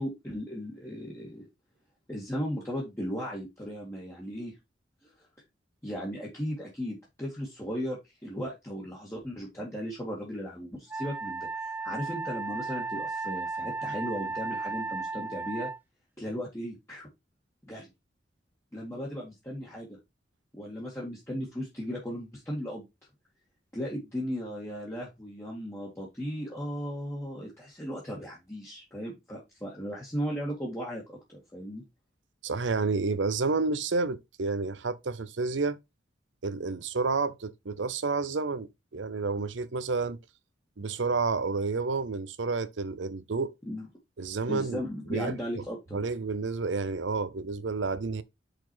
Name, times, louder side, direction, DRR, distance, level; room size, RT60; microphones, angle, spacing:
voice 1, 0.0-1.5 2.1-4.6 5.0-5.1 5.8-15.7 16.2-17.1 17.7-17.9 18.7-20.0 20.5-22.8 23.7-31.8 43.7-43.9 44.5-46.0, equal, 15° left, 2.0 m, -36 dB
Wind instrument woodwind instrument, 10.9-15.8, right 3 dB, 10° right, 0.3 m, -35 dB
voice 2, 32.4-35.8 36.4-40.2 40.8-43.5 44.2-45.3 45.9-48.2, right 4 dB, 80° right, 0.7 m, -30 dB
6.0 x 4.8 x 4.5 m
head